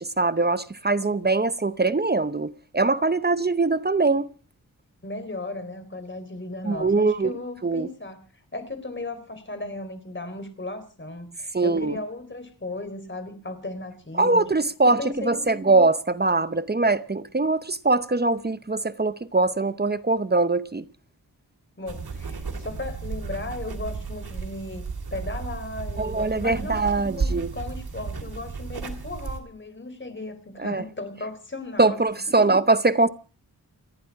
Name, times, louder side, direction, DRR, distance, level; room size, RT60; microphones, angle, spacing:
voice 1, 0.2-4.3 6.6-7.3 7.6-7.9 11.5-12.0 14.2-20.8 26.0-27.5 30.6-30.8 31.8-33.1, right 3 dB, 25° right, 0.8 m, -22 dB
voice 2, 5.0-8.2 8.5-14.5 14.8-15.8 21.8-32.0 32.3-32.6, left 2 dB, 30° left, 3.9 m, -36 dB
sound 1, 21.9-29.4, right 4 dB, 80° right, 3.1 m, -33 dB
29.5 x 10.5 x 4.7 m
wide cardioid pair, 90°, 37 cm